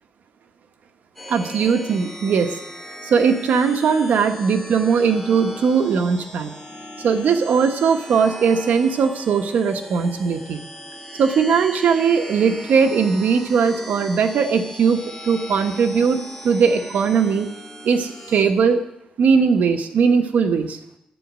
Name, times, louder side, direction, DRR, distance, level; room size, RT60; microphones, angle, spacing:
sound 1, 1.2-18.5, equal, 10° left, 3.6 m, -38 dB
voice 1, 1.3-2.6 3.0-6.5 7.0-10.6 11.2-17.5 17.8-18.8 19.2-20.8, right 6 dB, 90° right, 6 dB, 1.2 m, -19 dB
11.5 x 9.1 x 6.3 m, 0.79 s
wide cardioid pair, 105°, 3 cm